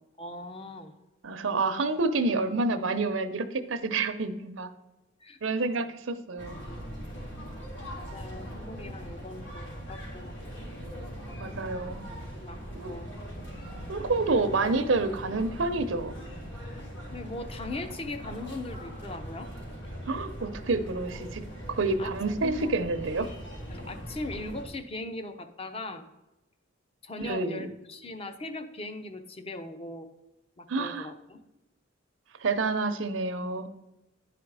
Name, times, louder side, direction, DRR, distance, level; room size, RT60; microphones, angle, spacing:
voice 1, 0.2-0.9 5.2-5.9 6.6-6.8 8.0-10.4 12.4-13.1 17.1-19.5 22.0-22.1 22.4-22.7 23.7-26.1 27.0-30.1 30.6-31.4, left 2 dB, 30° left, 8 dB, 0.7 m, -40 dB
voice 2, 1.2-4.7 5.4-6.6 11.4-12.0 12.8-12.9 13.9-16.1 20.1-21.4 21.7-23.3 27.2-27.7 30.7-31.1 32.4-33.7, right 3 dB, 80° right, 10 dB, 0.7 m, -28 dB
sound 1, 6.4-24.6, equal, 65° left, 3.5 m, -41 dB
10.5 x 5.1 x 4.7 m, 1.0 s
head